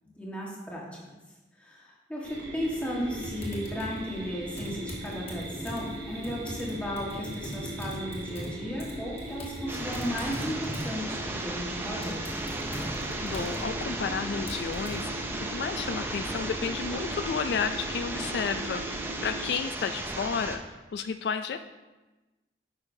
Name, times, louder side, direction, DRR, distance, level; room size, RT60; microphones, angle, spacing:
voice 1, 0.1-1.0 1.6-12.4, equal, 5° left, -4 dB, 1.3 m, -35 dB
sound 1, 2.2-19.5, right 1 dB, 60° right, 1.3 m, -40 dB
Typing, 3.2-15.0, equal, 35° left, 1.3 m, -42 dB
sound 2, 9.7-20.6, right 2 dB, 10° right, 0.5 m, -35 dB
voice 2, 13.2-18.8 19.2-20.6 20.9-21.6, left 6 dB, 70° left, 9 dB, 0.3 m, -32 dB
9.4 x 5.6 x 2.7 m, 1.1 s
head